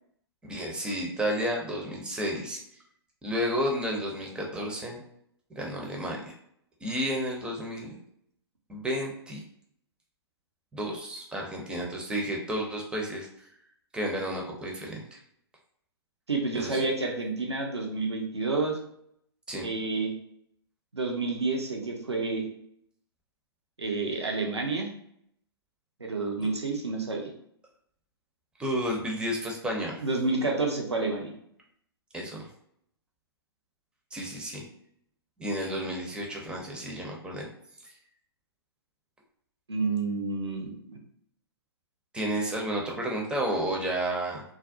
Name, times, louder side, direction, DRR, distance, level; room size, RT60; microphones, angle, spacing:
voice 1, 0.4-2.6 3.2-5.0 5.5-6.3 6.8-8.0 8.7-9.4 10.7-13.3 13.9-15.2 16.5-16.8 19.5-19.7 28.6-30.0 32.1-32.5 34.1-34.6 35.4-37.5 42.1-44.4, equal, 5° right, -1 dB, 0.5 m, -31 dB
voice 2, 16.3-18.8 19.6-20.1 20.9-22.5 23.8-24.9 26.0-27.3 30.0-31.3 39.7-41.0, right 3 dB, 90° right, 1 dB, 0.6 m, -29 dB
2.4 x 2.0 x 2.5 m, 0.71 s
figure-of-eight pair, 120°, 14 cm